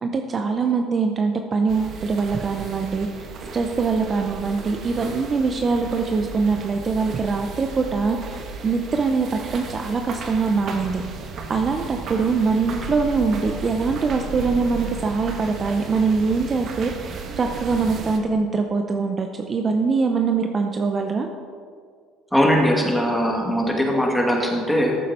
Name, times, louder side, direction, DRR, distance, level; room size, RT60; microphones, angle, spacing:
voice 1, 0.0-3.1 3.5-11.0 11.5-21.3, right 4 dB, 35° right, 5 dB, 0.7 m, -23 dB
sound 1, 1.7-18.2, right 5 dB, 55° right, 1.3 m, -35 dB
voice 2, 22.3-25.0, equal, 5° left, 0 dB, 2.2 m, -20 dB
14.0 x 7.5 x 4.3 m, 2.1 s
supercardioid pair, 90°, 0 cm